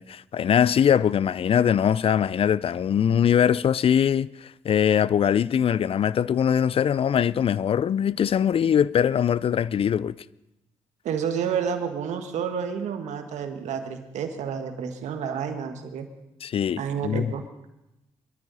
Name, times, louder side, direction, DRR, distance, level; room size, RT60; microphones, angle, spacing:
voice 1, 0.0-10.2 16.4-17.3, left 8 dB, 50° left, 0.4 m, -22 dB
voice 2, 11.0-16.1 16.8-17.4, right 7 dB, 75° right, 1.6 m, -30 dB
22.5 x 13.0 x 4.1 m
supercardioid pair, 50°, 12 cm